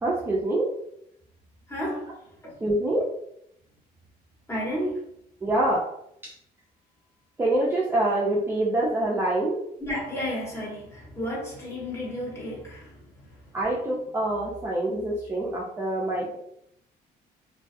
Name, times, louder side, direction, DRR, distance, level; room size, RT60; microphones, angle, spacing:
voice 1, 0.0-0.7 2.6-3.1 5.4-5.9 6.2-6.3 7.4-9.6 12.5-12.6 13.5-16.4, right 1 dB, 15° right, -5 dB, 0.4 m, -25 dB
voice 2, 1.7-2.1 2.4-2.5 4.5-5.0 9.8-13.1, equal, 15° left, -5 dB, 1.1 m, -32 dB
2.3 x 2.2 x 2.6 m, 0.74 s
cardioid pair, 110°, 17 cm